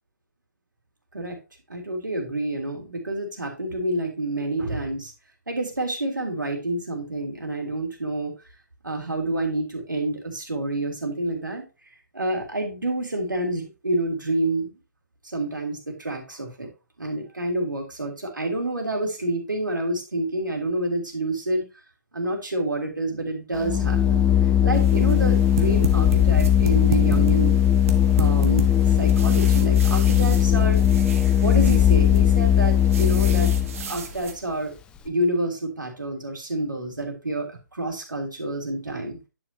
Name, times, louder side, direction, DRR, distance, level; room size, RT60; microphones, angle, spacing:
voice 1, 1.7-5.1 5.5-8.3 8.8-11.6 12.1-14.7 15.2-16.7 17.0-21.6 22.1-24.2 24.6-27.6 28.1-30.8 31.4-33.5 33.9-34.8 35.0-39.2, right 1 dB, 85° right, 2 dB, 3.0 m, -28 dB
Organ, 23.6-33.9, left 9 dB, 10° left, 0.5 m, -19 dB
sound 1, 24.7-34.3, right 5 dB, 45° right, 1.4 m, -34 dB
10.0 x 6.1 x 2.8 m, 0.29 s
figure-of-eight pair, 140°, 10 cm